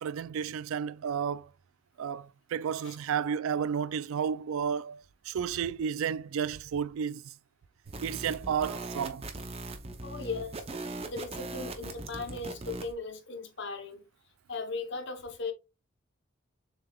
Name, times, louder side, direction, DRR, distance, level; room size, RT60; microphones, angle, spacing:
voice 1, 0.0-1.5 2.0-7.3 8.0-9.3, right 7 dB, 75° right, 0.3 m, -32 dB
sound 1, 7.9-12.9, right 2 dB, 30° right, 0.6 m, -40 dB
voice 2, 10.0-10.6 11.0-14.0 14.5-15.5, left 3 dB, 55° left, 0.8 m, -37 dB
6.8 x 3.4 x 2.3 m
head